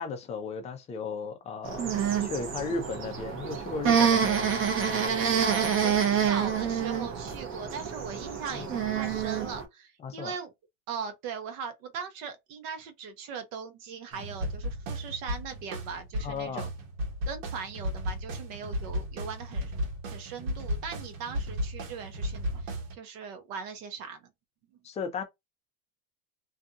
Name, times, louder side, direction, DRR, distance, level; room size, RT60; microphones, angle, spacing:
voice 1, 0.0-1.8 2.2-4.6 8.5-8.8 10.0-10.4 16.2-16.7 24.8-25.2, left 4 dB, 15° left, 0.3 m, -35 dB
sound 1, 1.6-9.6, right 7 dB, 30° right, 0.7 m, -27 dB
voice 2, 5.2-10.5 10.9-16.7 17.3-19.7 20.1-22.7 23.0-24.2, right 6 dB, 60° right, 0.8 m, -39 dB
sound 2, 14.1-23.0, equal, 75° right, 1.2 m, -35 dB
2.7 x 2.5 x 2.2 m
supercardioid pair, 130°, 44 cm